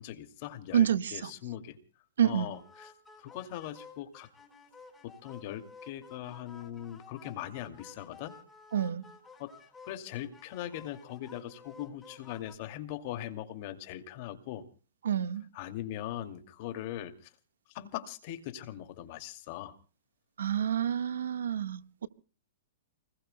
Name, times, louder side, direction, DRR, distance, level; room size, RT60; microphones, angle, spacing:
voice 1, 0.0-1.8 2.2-2.9 3.2-4.3 5.0-8.3 9.4-9.5 9.8-14.6 15.5-17.3 17.7-19.8, left 12 dB, 40° left, 7 dB, 2.4 m, -40 dB
voice 2, 0.7-1.3 2.2-2.5 8.7-9.0 15.0-15.5 20.4-22.1, right 9 dB, 85° right, 10 dB, 1.5 m, -28 dB
sound 1, 2.4-12.6, left 4 dB, 10° left, 4.4 m, -54 dB
29.5 x 20.5 x 2.2 m, 0.38 s
hypercardioid pair, 155°, 0 cm